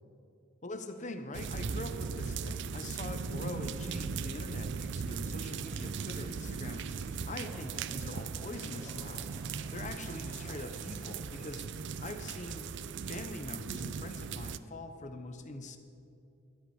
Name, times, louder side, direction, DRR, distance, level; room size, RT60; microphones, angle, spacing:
voice 1, 0.6-6.8 7.2-9.3 9.7-11.7 12.0-12.7 13.0-15.8, left 2 dB, 35° left, 8 dB, 0.9 m, -43 dB
sound 1, 1.3-14.6, right 5 dB, 60° right, 0.4 m, -38 dB
sound 2, 5.6-11.2, left 1 dB, 15° left, 1.7 m, -56 dB
13.5 x 12.5 x 4.9 m, 2.8 s
head